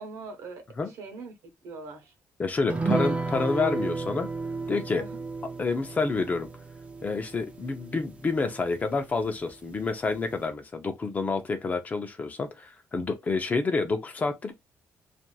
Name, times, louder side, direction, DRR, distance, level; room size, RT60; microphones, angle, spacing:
voice 1, 0.0-1.3 1.6-2.1 4.9-5.2, right 3 dB, 85° right, 0.8 m, -42 dB
voice 2, 2.4-4.3 4.7-5.0 5.6-6.5 7.0-14.5, left 4 dB, 30° left, 0.6 m, -28 dB
sound 1, 2.7-9.5 9.8-9.9 10.2-10.4, right 4 dB, 25° right, 0.6 m, -33 dB
2.9 x 2.5 x 2.2 m
cardioid pair, 115°, 5 cm